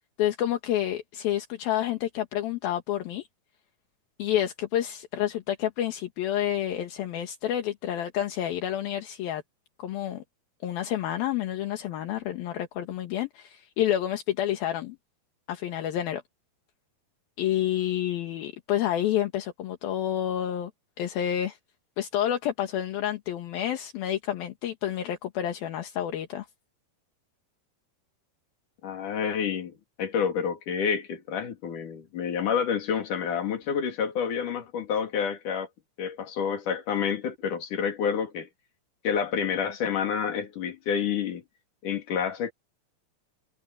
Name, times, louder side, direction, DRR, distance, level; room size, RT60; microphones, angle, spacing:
voice 1, 0.2-3.3 4.2-9.4 9.8-10.2 10.6-15.0 15.5-16.2 17.4-20.7 21.0-21.6 22.0-26.5, left 11 dB, 75° left, 3.3 m, -29 dB
voice 2, 28.8-35.7 36.0-38.5 39.0-41.4 41.8-42.5, left 7 dB, 55° left, 4.2 m, -29 dB
omnidirectional pair, 4.4 m